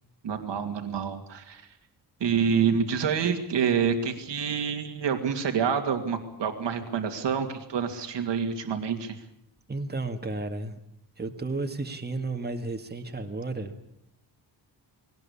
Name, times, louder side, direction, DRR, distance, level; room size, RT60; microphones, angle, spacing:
voice 1, 0.2-1.8 2.2-9.2, right 7 dB, 75° right, 6 dB, 2.6 m, -27 dB
voice 2, 9.7-10.8 11.2-13.9, right 3 dB, 20° right, 5 dB, 1.9 m, -33 dB
20.0 x 18.5 x 8.6 m, 0.76 s
cardioid pair, 100°, 43 cm